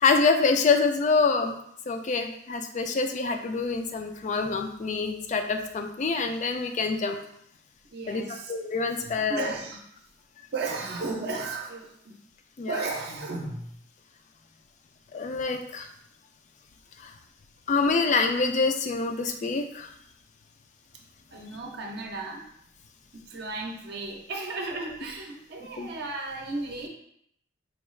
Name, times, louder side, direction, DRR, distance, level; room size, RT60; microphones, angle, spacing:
voice 1, 0.0-1.6 1.9-7.2 8.1-8.2 8.5-9.5 12.6-12.8 15.1-15.9 17.0-17.1 17.7-19.9 25.8-25.9, left 4 dB, 40° left, 6 dB, 0.3 m, -26 dB
voice 2, 7.9-8.5 9.0-9.8 10.5-12.2 12.7-13.7 21.3-22.5 23.1-26.9, right 3 dB, 55° right, 1 dB, 0.6 m, -34 dB
4.4 x 2.3 x 3.1 m, 0.72 s
head